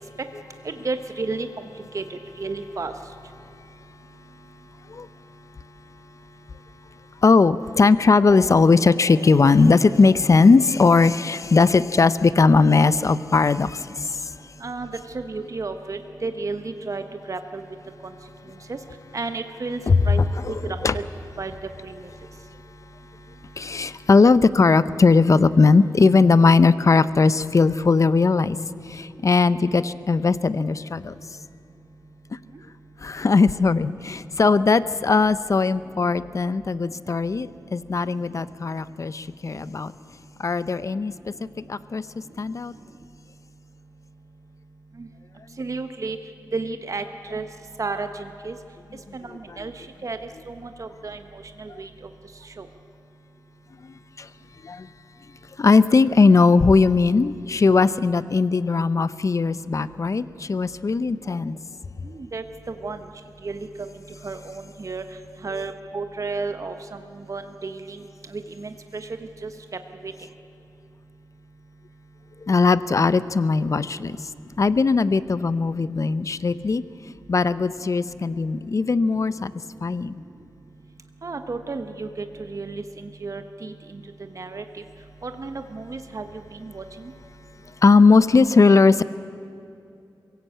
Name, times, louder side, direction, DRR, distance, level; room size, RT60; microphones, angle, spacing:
voice 1, 0.6-1.5 1.9-2.9 14.6-14.9 15.1-17.6 18.7-18.8 19.1-19.8 20.1-21.0 21.4-21.5 21.8-21.9 45.0-45.1 45.6-46.2 46.5-47.5 47.8-48.6 49.1-50.2 50.5-51.9 52.6-52.7 62.0-63.0 63.4-63.9 64.2-65.0 65.4-66.7 67.3-68.0 68.3-69.1 69.4-69.5 70.0-70.1 81.2-84.0 84.3-84.8 85.2-86.3 86.5-86.8, right 3 dB, 50° right, 7 dB, 1.1 m, -32 dB
voice 2, 7.2-14.3 19.9-20.0 20.4-20.5 20.8-21.0 23.6-28.6 28.9-31.1 33.0-39.9 40.4-41.1 41.4-42.0 42.4-42.7 54.2-54.3 54.6-54.9 55.6-61.6 72.4-74.2 74.6-76.8 77.3-79.5 79.8-80.1 87.8-89.0, left 4 dB, 45° left, 16 dB, 0.7 m, -19 dB
23.0 x 16.5 x 8.5 m, 2.6 s
cardioid pair, 65°, 7 cm